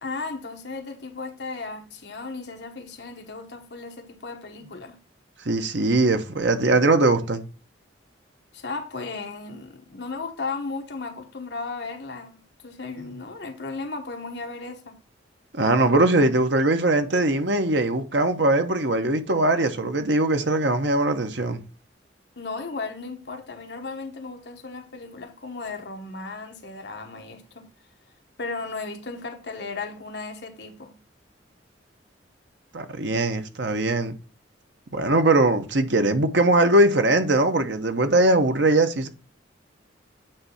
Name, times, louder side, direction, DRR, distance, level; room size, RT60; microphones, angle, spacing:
voice 1, 0.0-5.0 8.5-15.0 22.4-27.7 28.4-31.0, left 3 dB, 65° left, 1.3 m, -35 dB
voice 2, 5.4-7.5 15.5-21.6 32.7-34.2 34.9-39.1, right 2 dB, 75° right, 1.0 m, -21 dB
8.8 x 3.4 x 5.6 m
head